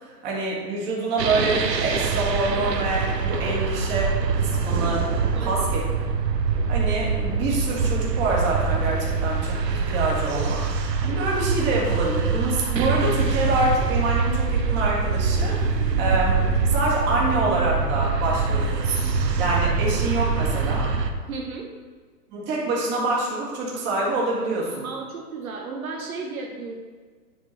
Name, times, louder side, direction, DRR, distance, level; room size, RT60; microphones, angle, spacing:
voice 1, 0.0-5.1 5.4-5.9 6.7-10.6 11.0-19.1 19.4-20.9 22.3-24.9, right 2 dB, 20° right, -4 dB, 1.7 m, -26 dB
sound 1, 1.2-21.1, right 5 dB, 85° right, 0.9 m, -24 dB
voice 2, 21.3-21.7 24.8-26.7, right 4 dB, 60° right, 0 dB, 1.1 m, -34 dB
9.7 x 3.8 x 4.2 m, 1.5 s
hypercardioid pair, 145°, 48 cm